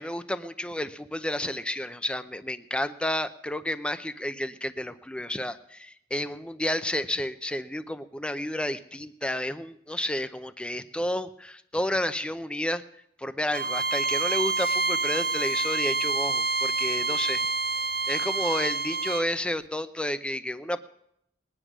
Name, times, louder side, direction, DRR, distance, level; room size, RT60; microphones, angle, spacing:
voice 1, 0.0-12.8 13.2-17.5 18.1-20.8, left 1 dB, 5° left, 12 dB, 0.6 m, -31 dB
Bowed string instrument, 13.5-19.3, right 3 dB, 55° right, 0.9 m, -27 dB
20.0 x 10.0 x 6.2 m, 0.76 s
head